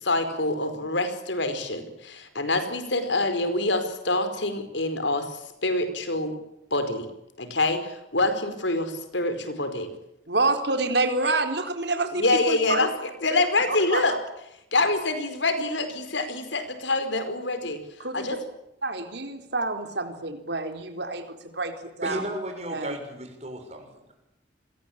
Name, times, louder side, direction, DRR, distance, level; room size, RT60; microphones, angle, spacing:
voice 1, 0.0-5.3 5.6-6.4 6.7-7.1 7.4-9.9 12.2-14.1 14.7-17.8 18.1-18.4, left 2 dB, 75° left, 10 dB, 4.8 m, -26 dB
voice 2, 10.3-12.9 13.9-14.2 18.0-18.4 18.8-21.3 21.5-21.7 22.0-22.3 22.7-22.9, right 3 dB, 60° right, 6 dB, 4.0 m, -27 dB
voice 3, 22.0-23.9, right 1 dB, 35° right, 4 dB, 6.5 m, -34 dB
28.5 x 22.0 x 8.8 m, 0.84 s
head